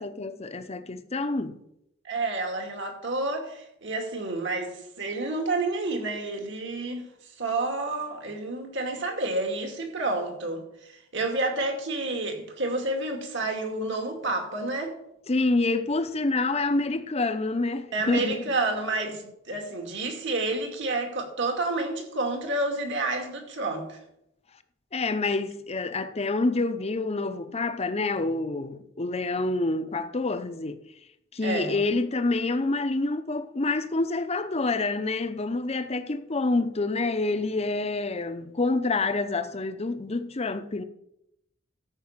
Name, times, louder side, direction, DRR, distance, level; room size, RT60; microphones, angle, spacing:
voice 1, 0.0-1.6 15.3-18.4 24.9-30.8 31.3-40.8, left 3 dB, 30° left, 0.7 m, -27 dB
voice 2, 2.0-7.1 7.4-14.9 17.9-24.0 31.4-31.8, right 2 dB, 60° right, 2.4 m, -29 dB
13.5 x 5.5 x 7.4 m
head